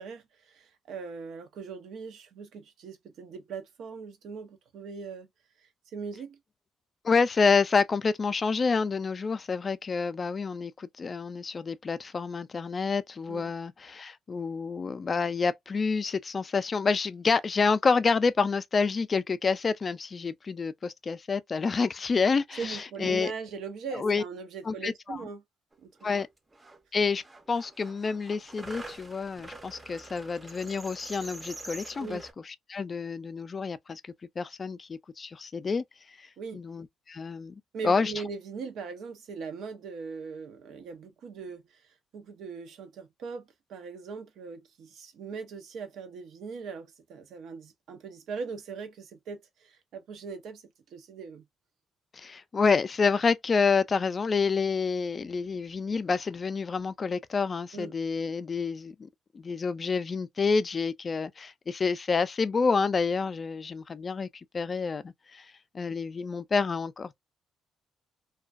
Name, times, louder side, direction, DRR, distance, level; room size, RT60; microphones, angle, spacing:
voice 1, 0.0-5.3 5.9-6.4 13.3-13.5 22.6-25.4 25.8-26.2 32.0-32.2 36.4-36.6 37.7-50.6 50.9-51.4 57.7-57.9, right 5 dB, 75° right, 0.6 m, -40 dB
voice 2, 7.0-23.3 23.9-24.2 24.7-25.2 26.0-26.3 26.9-27.2 27.5-34.0 34.4-35.8 36.2-36.3 36.5-38.1 52.1-59.1 59.3-64.3 64.5-65.5 65.7-67.2, left 5 dB, 35° left, 0.3 m, -28 dB
sound 1, 25.7-25.8 26.0-26.8 27.2-32.3, right 2 dB, 20° right, 0.6 m, -46 dB
2.3 x 2.2 x 2.4 m
cardioid pair, 90°, 0 cm